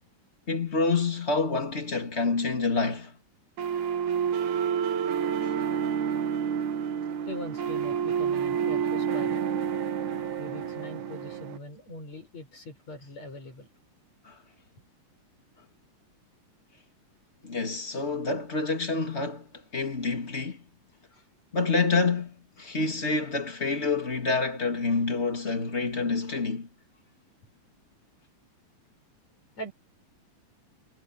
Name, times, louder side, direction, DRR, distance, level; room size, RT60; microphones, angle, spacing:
voice 1, 0.5-3.1 5.4-5.5 14.2-14.4 17.4-20.6 21.5-26.7, left 3 dB, 20° left, 2.7 m, -28 dB
sound 1, 3.6-11.6, right 8 dB, 75° right, 3.1 m, -29 dB
voice 2, 7.2-9.4 10.4-13.7 21.1-21.3 29.6-29.7, left 1 dB, 60° left, 8.2 m, -42 dB
omnidirectional pair, 3.4 m